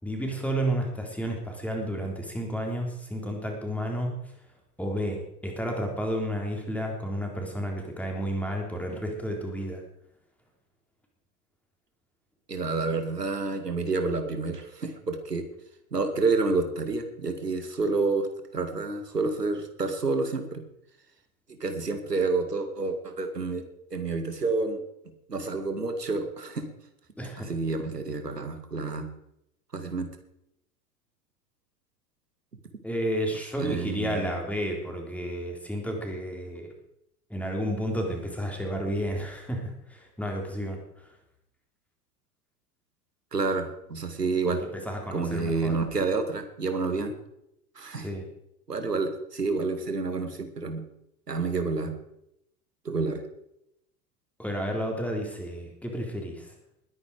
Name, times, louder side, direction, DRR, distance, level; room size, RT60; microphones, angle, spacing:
voice 1, 0.0-4.3 4.8-9.8 27.2-27.5 32.8-36.7 37.3-41.2 44.5-45.8 47.9-48.3 54.4-56.5, equal, 5° left, 1 dB, 3.7 m, -31 dB
voice 2, 12.5-15.5 15.9-18.3 18.5-20.6 21.5-23.6 23.9-24.8 25.3-26.7 27.5-29.1 29.7-30.1 33.6-34.2 43.3-44.6 45.1-47.1 47.8-48.1 48.7-50.8 51.3-51.9 52.9-53.2, right 3 dB, 85° right, 7 dB, 2.0 m, -29 dB
20.5 x 9.8 x 4.9 m, 0.79 s
figure-of-eight pair, 90°, 46 cm